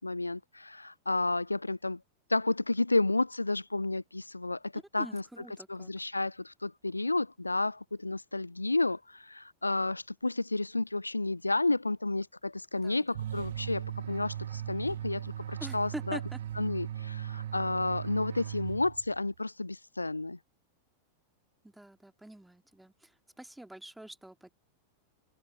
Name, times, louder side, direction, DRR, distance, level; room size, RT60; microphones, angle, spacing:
voice 1, 0.0-2.0 2.3-5.2 5.7-16.2 16.6-20.4, left 2 dB, 85° left, 0.4 m, -31 dB
voice 2, 5.0-5.9 12.8-13.0 15.6-16.4 21.6-23.1 23.4-24.5, right 1 dB, 5° right, 2.3 m, -45 dB
sound 1, 13.2-19.3, right 11 dB, 60° right, 0.6 m, -38 dB
figure-of-eight pair, 90°, 0 cm